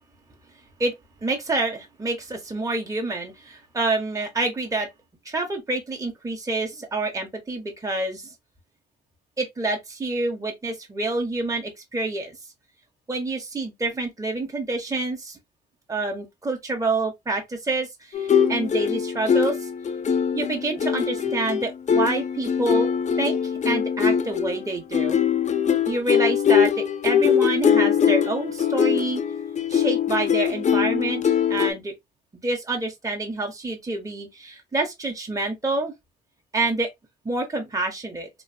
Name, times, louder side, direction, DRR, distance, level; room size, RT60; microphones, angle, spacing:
voice 1, 1.2-4.9 5.2-8.3 9.4-12.3 13.1-15.4 15.9-19.7 20.3-22.9 23.2-25.2 25.9-29.2 29.7-31.9 32.4-35.9 36.5-36.9 37.2-38.3, right 2 dB, 15° right, 1.0 m, -27 dB
sound 1, 18.1-31.7, left 8 dB, 35° left, 0.5 m, -22 dB
3.1 x 2.6 x 2.7 m
cardioid pair, 90°, 20 cm